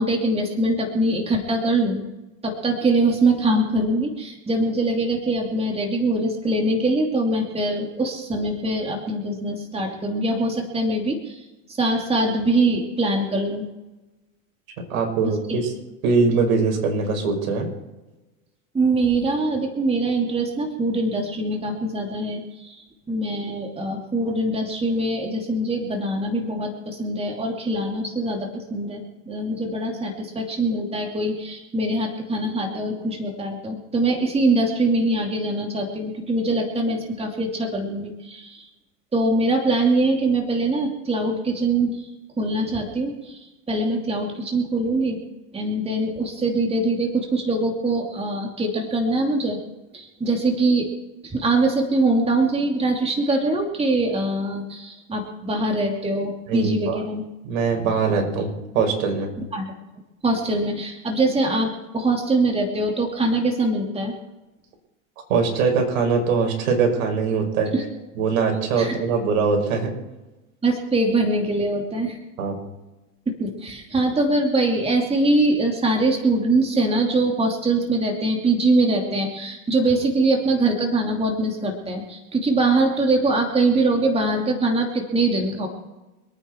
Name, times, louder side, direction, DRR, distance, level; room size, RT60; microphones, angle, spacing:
voice 1, 0.0-2.0 2.4-11.4 11.8-13.7 15.2-15.6 18.7-38.7 39.1-42.0 42.4-45.2 45.5-49.6 49.9-50.9 51.2-57.2 59.5-59.7 60.2-64.1 67.7-67.8 68.8-69.0 70.6-72.2 73.3-85.7, right 2 dB, 15° right, 2 dB, 2.8 m, -23 dB
voice 2, 14.9-15.7 16.0-17.7 56.5-57.0 57.4-59.3 65.3-67.7 68.2-69.9 72.4-72.6, right 5 dB, 75° right, 3 dB, 5.6 m, -22 dB
26.5 x 9.4 x 4.5 m, 1.1 s
supercardioid pair, 115°, 41 cm